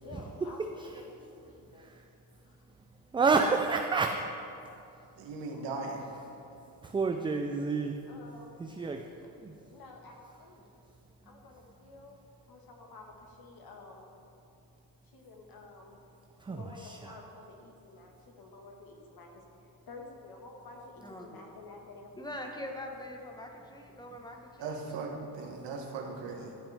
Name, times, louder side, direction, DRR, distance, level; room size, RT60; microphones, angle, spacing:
voice 1, 0.0-0.6 0.9-1.9 2.5-2.6 5.5-6.1 8.1-8.6 9.7-10.6 11.2-12.2 12.5-14.1 15.1-16.0 16.5-19.4 19.9-22.2 25.7-25.8, left 3 dB, 50° left, 1 dB, 1.7 m, -51 dB
voice 2, 3.1-4.2 6.8-8.0 8.6-9.0 9.4-9.5 16.4-17.2, right 4 dB, 10° right, 4 dB, 0.3 m, -29 dB
voice 3, 5.2-6.1 24.6-26.5, right 3 dB, 65° right, 0 dB, 1.6 m, -38 dB
voice 4, 21.0-21.5 22.2-24.8, left 1 dB, 10° left, 2 dB, 1.3 m, -43 dB
13.0 x 5.9 x 3.5 m, 2.7 s
supercardioid pair, 70°, 45 cm